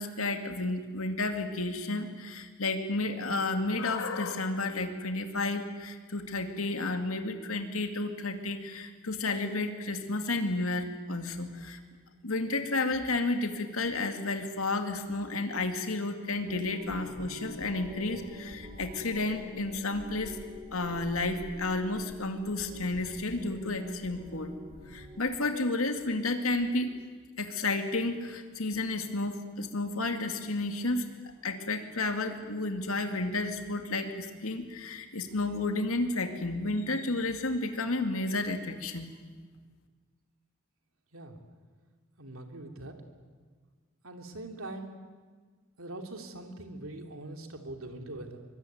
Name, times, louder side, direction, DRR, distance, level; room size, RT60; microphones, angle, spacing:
voice 1, 0.0-11.8 12.2-20.4 20.7-24.5 24.9-27.0 27.4-31.1 31.4-39.1, left 2 dB, 85° left, 6 dB, 2.4 m, -32 dB
sound 1, 16.5-25.2, left 1 dB, 25° right, 5.1 m, -45 dB
voice 2, 42.2-43.0 44.0-45.0 45.8-48.4, right 2 dB, 75° right, 5 dB, 3.0 m, -42 dB
23.5 x 22.5 x 9.5 m, 1.5 s
head